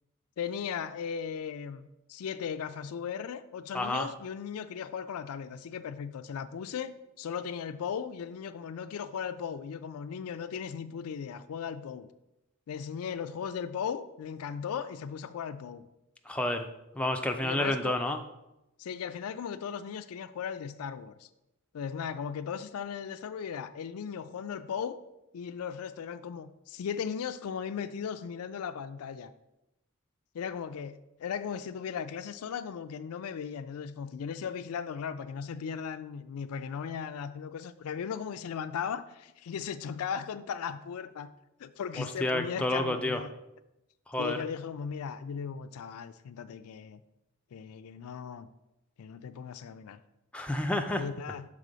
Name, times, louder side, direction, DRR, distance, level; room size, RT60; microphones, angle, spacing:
voice 1, 0.4-12.1 12.7-15.8 17.4-18.0 18.8-21.3 21.7-25.0 25.3-29.3 30.3-41.3 41.6-43.3 44.2-47.0 47.5-48.5 49.0-50.0 51.0-51.5, left 7 dB, 75° left, 0.4 m, -37 dB
voice 2, 3.7-4.1 16.3-16.7 16.9-18.2 42.0-43.2 44.1-44.4 50.3-51.0, left 1 dB, 5° left, 0.4 m, -30 dB
6.7 x 3.4 x 5.0 m
head